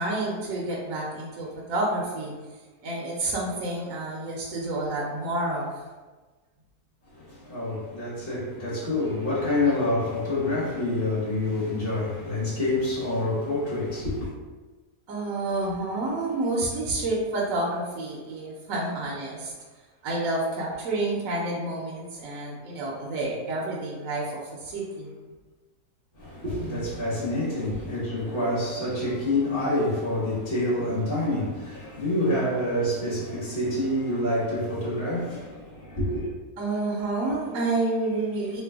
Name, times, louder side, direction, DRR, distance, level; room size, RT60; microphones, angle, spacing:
voice 1, 0.0-2.3 2.8-5.8 9.6-9.8 15.1-19.5 20.0-25.1 26.6-26.8 27.7-27.8 36.6-38.6, right 2 dB, 65° right, 0.9 m, -29 dB
voice 2, 7.1-14.3 26.1-36.3, left 1 dB, 35° left, 1.1 m, -27 dB
3.2 x 2.1 x 3.4 m
omnidirectional pair, 1.7 m